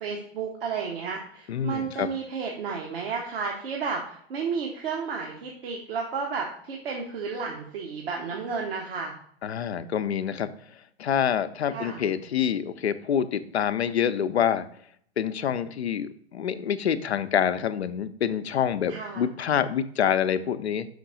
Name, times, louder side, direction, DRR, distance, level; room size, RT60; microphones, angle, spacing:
voice 1, 0.0-9.1 11.7-12.0 18.9-19.2, right 5 dB, 60° right, 0 dB, 1.1 m, -32 dB
voice 2, 1.5-2.1 9.4-10.5 11.0-14.7 15.2-20.9, left 8 dB, 80° left, 11 dB, 0.6 m, -26 dB
6.0 x 5.1 x 3.8 m, 0.62 s
figure-of-eight pair, 95°, 32 cm